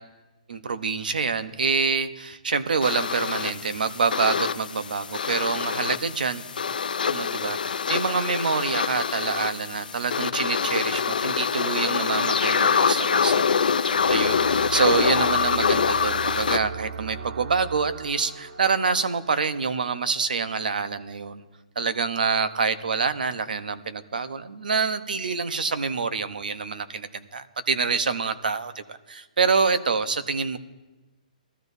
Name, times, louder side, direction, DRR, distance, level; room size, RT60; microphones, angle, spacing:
voice 1, 0.5-6.4 7.1-21.4 21.8-30.6, right 5 dB, 85° right, 11 dB, 0.9 m, -26 dB
sound 1, 2.8-16.6, left 6 dB, 90° left, 0.5 m, -25 dB
sound 2, 13.8-19.9, right 5 dB, 70° right, 1.1 m, -38 dB
21.0 x 13.5 x 2.7 m, 1.1 s
hypercardioid pair, 170°, 5 cm